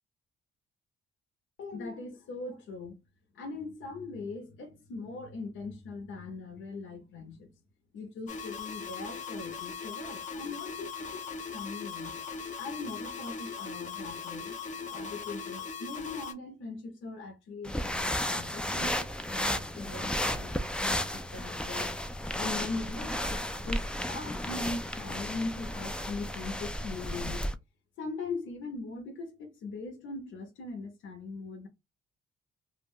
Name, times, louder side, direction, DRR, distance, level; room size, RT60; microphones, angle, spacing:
voice 1, 1.6-3.0 3.3-7.5 7.9-12.2 12.5-14.5 14.9-21.9 22.3-27.4 28.0-31.7, left 3 dB, 75° left, 0.8 m, -40 dB
sound 1, 8.3-16.3, left 5 dB, 40° left, 0.7 m, -39 dB
sound 2, 17.6-27.6, left 1 dB, 5° left, 0.3 m, -33 dB
2.3 x 2.1 x 3.5 m
cardioid pair, 90°, 20 cm